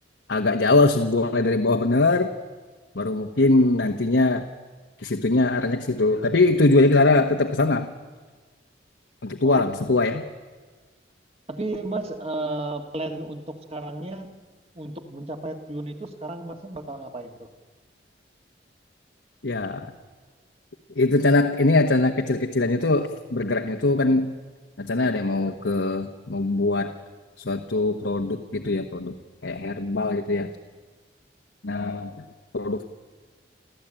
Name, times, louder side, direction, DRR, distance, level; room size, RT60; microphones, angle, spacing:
voice 1, 0.3-2.3 2.9-4.4 5.0-7.9 9.2-10.2 19.4-19.9 20.9-24.3 24.8-26.9 27.4-29.1 29.4-30.5 31.6-32.2 32.5-32.8, left 2 dB, 80° left, 4 dB, 1.2 m, -22 dB
voice 2, 11.5-14.3 14.7-17.5, right 2 dB, 35° right, 5 dB, 1.9 m, -33 dB
29.0 x 14.0 x 8.9 m, 1.4 s
head